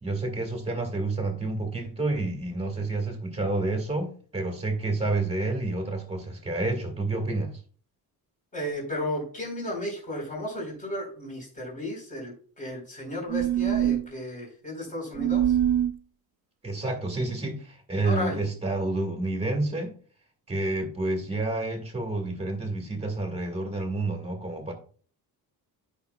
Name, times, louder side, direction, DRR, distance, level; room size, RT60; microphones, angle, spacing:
voice 1, 0.0-7.6 16.6-19.9 20.5-24.7, right 2 dB, 15° right, 4 dB, 1.9 m, -29 dB
voice 2, 8.5-15.6 18.0-18.4, left 1 dB, 20° left, -2 dB, 4.4 m, -34 dB
sound 1, 13.3-14.1 15.2-15.9, right 11 dB, 70° right, 0.7 m, -23 dB
13.5 x 5.8 x 2.4 m, 0.43 s
cardioid pair, 170°, 39 cm